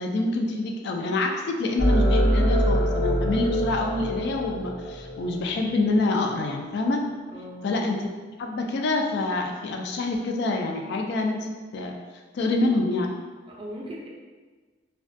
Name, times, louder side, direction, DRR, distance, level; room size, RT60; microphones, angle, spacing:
voice 1, 0.0-7.0 7.6-8.0 8.4-12.0 12.3-13.1, left 2 dB, 60° left, 3 dB, 0.3 m, -26 dB
sound 1, 1.8-5.8, equal, 80° left, 1.0 m, -24 dB
voice 2, 7.3-7.8 13.5-14.1, equal, 30° right, -2 dB, 0.4 m, -38 dB
2.4 x 2.2 x 2.5 m, 1.4 s
head